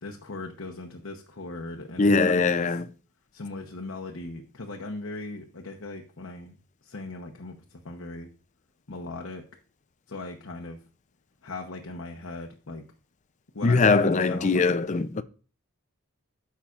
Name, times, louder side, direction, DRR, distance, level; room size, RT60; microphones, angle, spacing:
voice 1, 0.0-2.6 3.3-6.5 6.8-7.6 7.8-8.3 8.9-9.4 10.1-10.8 11.4-12.8 13.5-14.7, left 2 dB, 65° left, 0.9 m, -38 dB
voice 2, 2.0-2.9 13.6-15.2, left 3 dB, 35° left, 0.4 m, -21 dB
13.0 x 5.7 x 2.4 m
head